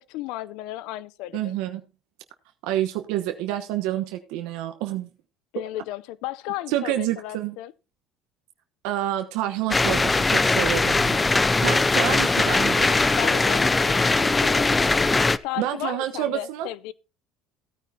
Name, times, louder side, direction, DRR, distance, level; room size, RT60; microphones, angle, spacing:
voice 1, 0.0-1.6 5.5-7.7 11.9-14.8 15.4-16.9, left 15 dB, 75° left, 0.6 m, -35 dB
voice 2, 1.3-1.8 2.6-5.1 6.7-7.5 8.8-11.2 11.6-12.9 15.6-16.7, right 13 dB, 80° right, 1.0 m, -28 dB
sound 1, 9.7-15.4, left 3 dB, 15° left, 0.4 m, -20 dB
15.5 x 9.4 x 2.8 m
cardioid pair, 125°, 0 cm